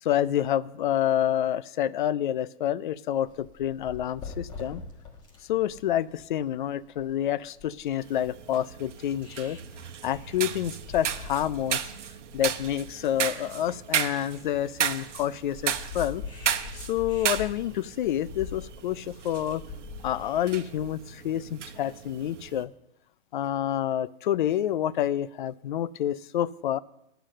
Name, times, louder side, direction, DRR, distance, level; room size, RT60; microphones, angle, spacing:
voice 1, 0.0-4.8 5.5-9.6 10.0-11.9 12.3-16.2 16.7-19.6 20.0-22.7 23.3-26.8, left 11 dB, 45° left, 17 dB, 0.4 m, -28 dB
sound 1, 3.2-20.9, left 5 dB, 15° left, 1.3 m, -44 dB
sound 2, 8.0-22.6, right 9 dB, 85° right, 1.0 m, -34 dB
10.5 x 6.8 x 7.5 m, 0.85 s
hypercardioid pair, 155°, 35 cm